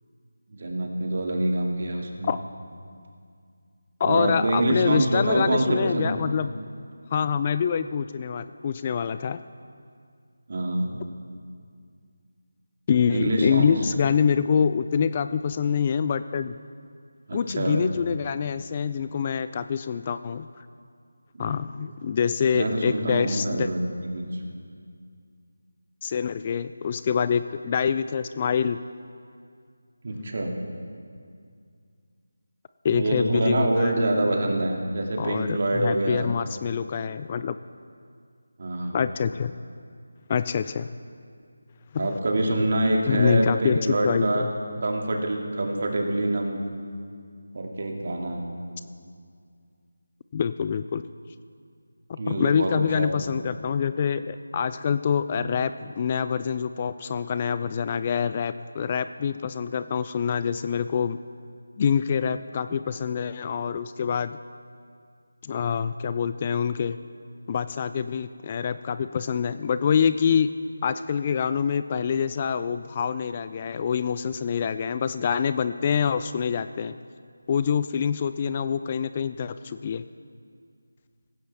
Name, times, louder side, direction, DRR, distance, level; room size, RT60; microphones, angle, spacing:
voice 1, 0.5-2.3 4.0-6.1 10.5-10.9 13.1-13.7 17.3-17.8 21.3-21.5 22.5-24.4 30.0-30.5 32.9-36.3 38.6-39.0 42.0-44.5 44.8-46.6 47.5-48.5 52.2-53.4, right 1 dB, 50° right, 1 dB, 2.4 m, -25 dB
voice 2, 4.0-6.5 7.1-9.4 12.9-16.6 17.3-20.5 21.4-23.7 26.0-28.8 32.8-33.9 35.2-37.6 38.9-39.5 40.3-40.9 41.9-42.1 43.1-44.5 50.3-51.0 52.1-61.2 61.8-64.4 65.4-67.0 67.5-70.5 70.8-77.0 77.5-80.1, left 7 dB, 30° left, 12 dB, 0.3 m, -26 dB
17.5 x 16.0 x 3.5 m, 2.2 s
figure-of-eight pair, 160°, 0 cm